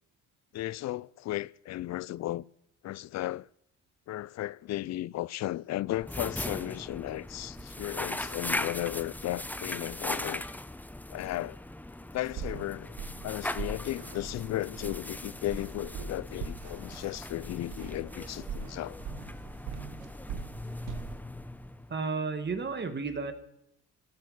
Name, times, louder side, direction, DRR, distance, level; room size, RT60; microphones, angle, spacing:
voice 1, 0.5-2.4 2.8-3.5 4.1-10.4 11.1-11.6 12.1-13.0 13.2-19.0, left 15 dB, 60° left, 0.5 m, -35 dB
sound 1, 5.9-22.0, left 1 dB, 5° left, 0.7 m, -39 dB
sound 2, 12.2-21.2, right 5 dB, 85° right, 1.5 m, -42 dB
voice 2, 21.9-23.3, right 4 dB, 35° right, 1.7 m, -32 dB
12.5 x 12.0 x 6.4 m
cardioid pair, 90°, 30 cm